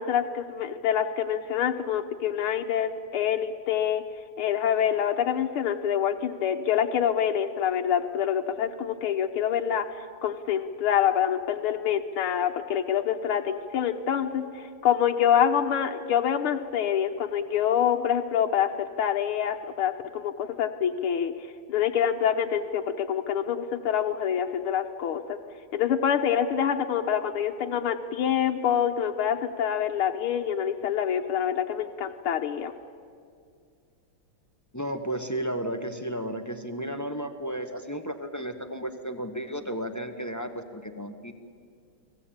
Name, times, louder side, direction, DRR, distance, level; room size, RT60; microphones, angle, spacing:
voice 1, 0.0-4.0 4.4-25.4 25.7-32.7, left 9 dB, 90° left, 3 dB, 1.9 m, -26 dB
voice 2, 34.7-41.3, right 1 dB, 15° left, 8 dB, 0.8 m, -33 dB
30.0 x 20.5 x 8.8 m, 2.2 s
omnidirectional pair, 2.3 m